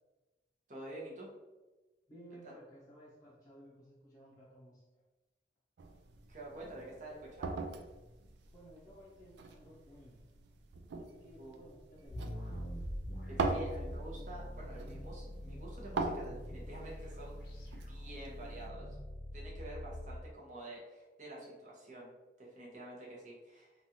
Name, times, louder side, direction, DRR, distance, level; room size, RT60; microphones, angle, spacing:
voice 1, 0.7-1.3 2.4-2.5 6.3-7.7 11.4-11.6 13.3-17.4 17.9-18.9 19.3-22.1 22.4-23.7, right 1 dB, 45° right, -4 dB, 0.9 m, -48 dB
voice 2, 2.1-4.8 6.6-6.8 8.5-10.2 11.0-12.3, equal, 20° left, -8 dB, 0.6 m, -56 dB
sound 1, 5.8-18.7, right 3 dB, 80° right, 0.3 m, -43 dB
sound 2, 12.1-20.2, equal, 55° left, 0.6 m, -44 dB
3.1 x 2.3 x 2.7 m, 1.1 s
head